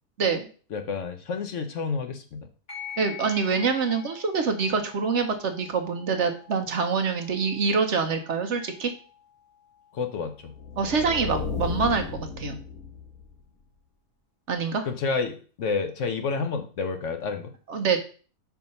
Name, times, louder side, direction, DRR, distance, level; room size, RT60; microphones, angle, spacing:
voice 1, 0.7-2.5 9.9-10.5 14.8-17.5, left 4 dB, 60° left, 7 dB, 1.0 m, -30 dB
sound 1, 2.7-11.7, left 10 dB, 40° left, 3.1 m, -47 dB
voice 2, 3.0-8.9 10.8-12.0 12.4-12.6 14.5-14.9 17.7-18.0, right 5 dB, 55° right, 6 dB, 1.0 m, -25 dB
sound 2, 10.5-13.4, left 5 dB, 80° left, 1.6 m, -34 dB
5.5 x 4.7 x 5.3 m, 0.39 s
omnidirectional pair, 1.5 m